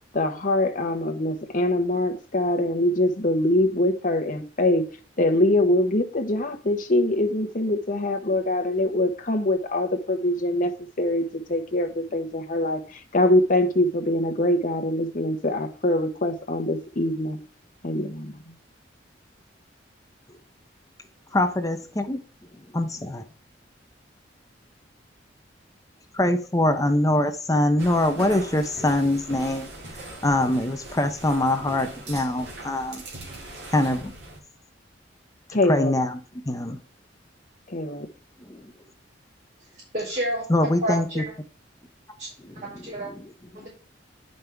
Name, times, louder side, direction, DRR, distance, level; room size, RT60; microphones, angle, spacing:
voice 1, 0.1-4.8 5.2-10.7 11.0-17.4 17.8-18.5 35.5-35.9 37.7-38.1, left 1 dB, 45° left, 1.1 m, -23 dB
voice 2, 21.3-22.2 22.7-23.2 26.1-29.7 30.2-33.0 33.7-34.1 35.5-36.2 36.5-36.8 38.4-38.7 40.5-41.2 42.4-43.3, left 1 dB, 20° left, 0.7 m, -24 dB
sound 1, 27.8-34.4, right 1 dB, 60° right, 2.6 m, -40 dB
voice 3, 39.9-40.4 40.8-41.3 42.2-42.3 42.5-43.1 43.5-43.7, right 1 dB, 40° right, 4.3 m, -29 dB
9.3 x 5.4 x 3.4 m
head